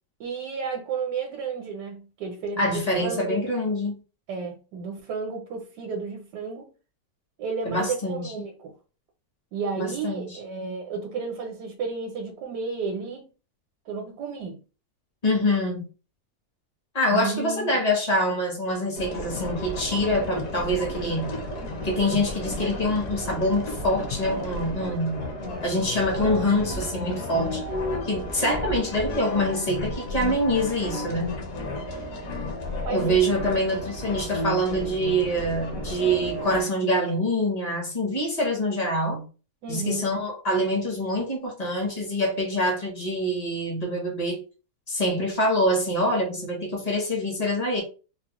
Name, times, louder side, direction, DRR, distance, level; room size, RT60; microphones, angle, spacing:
voice 1, 0.2-3.4 4.3-6.7 7.4-8.7 9.5-13.3 13.9-14.6 17.1-17.8 28.4-28.6 32.8-33.5 39.6-40.1, right 5 dB, 75° right, 1.2 m, -32 dB
voice 2, 2.6-4.0 7.6-8.5 9.8-10.4 15.2-15.9 16.9-21.3 21.8-25.3 25.6-27.6 28.0-31.3 32.9-39.2 39.7-44.4 44.9-47.8, equal, 40° left, 0.6 m, -25 dB
sound 1, 18.9-36.6, left 1 dB, 65° left, 1.1 m, -32 dB
3.8 x 2.0 x 2.9 m
omnidirectional pair, 1.8 m